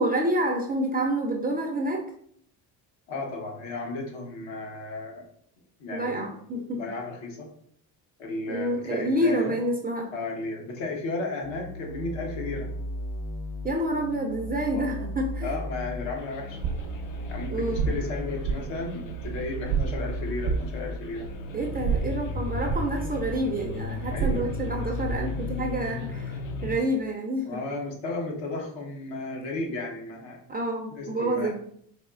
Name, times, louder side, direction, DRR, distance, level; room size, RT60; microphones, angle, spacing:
voice 1, 0.0-2.1 5.9-6.9 8.5-10.1 13.6-15.5 17.5-17.9 21.5-27.6 30.5-31.6, right 1 dB, 20° right, 0 dB, 0.3 m, -28 dB
voice 2, 3.1-5.2 5.8-6.3 6.5-7.5 8.2-9.5 10.1-12.7 14.7-15.1 15.4-16.6 17.3-21.3 24.1-24.5 27.5-30.4 30.9-31.5, left 3 dB, 70° left, 0 dB, 1.1 m, -34 dB
sound 1, 11.4-26.8, left 1 dB, 45° left, 0.5 m, -35 dB
sound 2, 16.5-25.4, right 6 dB, 75° right, 0.6 m, -33 dB
4.1 x 3.0 x 2.4 m, 0.66 s
cardioid pair, 100°, 47 cm